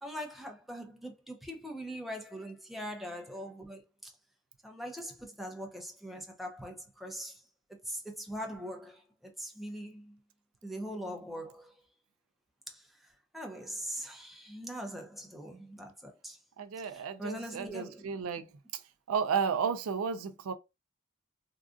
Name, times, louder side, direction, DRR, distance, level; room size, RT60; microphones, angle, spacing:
voice 1, 0.0-4.1 4.6-7.4 7.9-10.2 10.6-11.7 12.7-12.8 13.3-16.4 16.8-18.3, equal, ahead, 0.7 m, -42 dB
voice 2, 16.6-18.5 19.1-20.5, right 6 dB, 90° right, 0.4 m, -32 dB
3.7 x 2.4 x 2.4 m
head